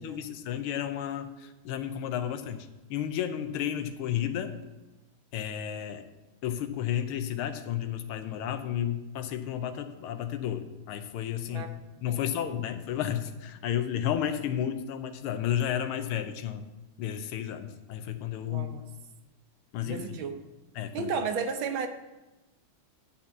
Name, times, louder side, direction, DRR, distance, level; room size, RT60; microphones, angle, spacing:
voice 1, 0.0-4.6 5.3-6.0 6.4-16.7 17.0-18.7 19.7-20.0 20.8-21.1, left 10 dB, 85° left, 9 dB, 1.6 m, -32 dB
voice 2, 18.5-18.8 19.8-20.4 20.9-21.9, right 5 dB, 70° right, 6 dB, 1.6 m, -33 dB
10.5 x 4.3 x 7.2 m, 1.1 s
omnidirectional pair, 2.4 m